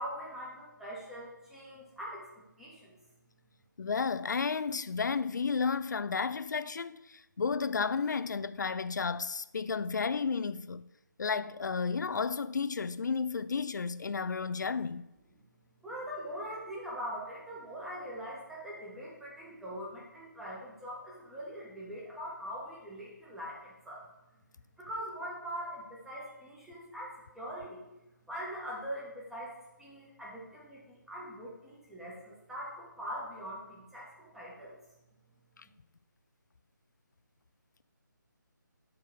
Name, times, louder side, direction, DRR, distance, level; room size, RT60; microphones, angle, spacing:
voice 1, 0.0-2.2 2.6-2.9 15.8-24.0 24.8-27.8 28.3-29.5 29.8-30.8 31.1-34.7, equal, 5° right, 1.3 m, -42 dB
voice 2, 3.8-10.8 11.2-15.0 35.6-35.7, left 5 dB, 65° left, 0.4 m, -32 dB
7.4 x 3.7 x 6.1 m
figure-of-eight pair, 155°, 11 cm